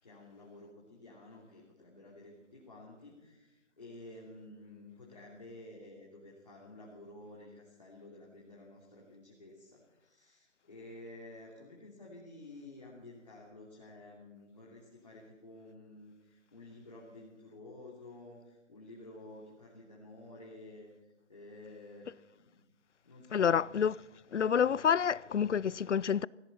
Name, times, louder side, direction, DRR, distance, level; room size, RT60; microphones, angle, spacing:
voice 1, 0.0-22.1 22.3-22.6 23.0-23.6, left 2 dB, 35° left, 3.0 m, -52 dB
voice 2, 23.3-24.0 24.3-26.3, left 7 dB, 70° left, 0.5 m, -28 dB
18.5 x 16.5 x 4.2 m
figure-of-eight pair, 175°, 37 cm